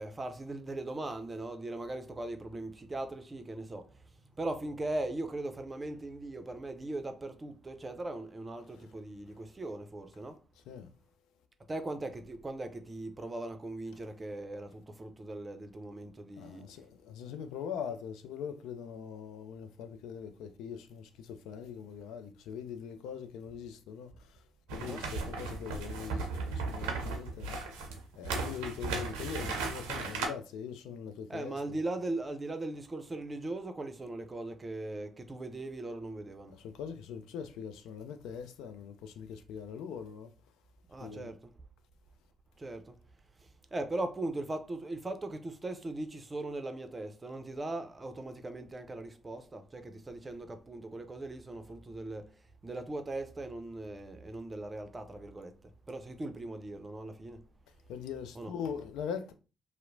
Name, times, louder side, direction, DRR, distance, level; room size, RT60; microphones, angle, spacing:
voice 1, 0.0-10.4 11.7-16.6 24.8-25.0 31.3-36.6 40.9-41.5 42.6-43.0 43.4-57.4 58.4-58.5, right 2 dB, 30° right, 0.5 m, -39 dB
voice 2, 16.4-24.4 24.7-31.8 36.5-40.3 41.0-41.3 57.9-59.3, left 7 dB, 70° left, 0.3 m, -42 dB
sound 1, 24.7-30.3, right 4 dB, 80° right, 0.5 m, -36 dB
2.8 x 2.0 x 2.6 m
hypercardioid pair, 45°, 0 cm